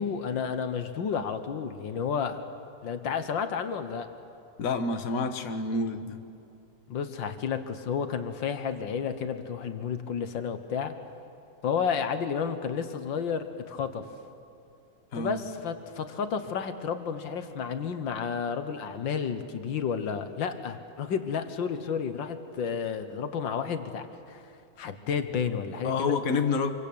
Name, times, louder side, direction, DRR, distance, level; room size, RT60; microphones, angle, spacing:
voice 1, 0.0-2.4 2.8-4.1 6.9-10.9 11.6-14.1 15.2-24.4 24.8-26.2, left 6 dB, 85° left, 9 dB, 2.0 m, -31 dB
voice 2, 4.6-6.2 15.1-15.4 25.8-26.7, left 4 dB, 50° left, 6 dB, 1.7 m, -28 dB
26.5 x 23.5 x 8.6 m, 2.7 s
omnidirectional pair, 2.0 m